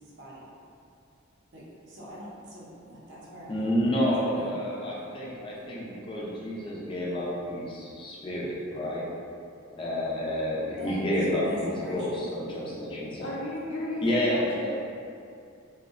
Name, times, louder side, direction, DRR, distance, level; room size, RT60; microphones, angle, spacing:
voice 1, 1.5-3.7 4.0-4.5 10.8-11.0 11.3-12.3, equal, 60° right, -6 dB, 0.6 m, -42 dB
voice 2, 3.5-9.0 9.8-13.3 14.0-14.7, equal, 25° left, -6 dB, 0.4 m, -29 dB
voice 3, 13.2-14.7, left 1 dB, 85° left, -6 dB, 0.5 m, -34 dB
2.6 x 2.1 x 2.4 m, 2.5 s
head